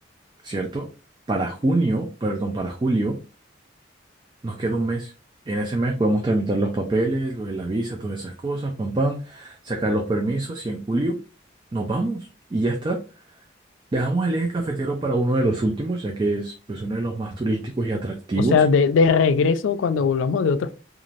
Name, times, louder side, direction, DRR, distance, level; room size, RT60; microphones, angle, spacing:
voice 1, 0.4-0.9 1.3-3.2 4.4-5.1 5.5-11.2 11.7-13.0 13.9-18.6, right 2 dB, 25° right, 0.3 m, -25 dB
voice 2, 18.5-20.7, left 5 dB, 90° left, 0.4 m, -19 dB
3.1 x 2.4 x 2.5 m
head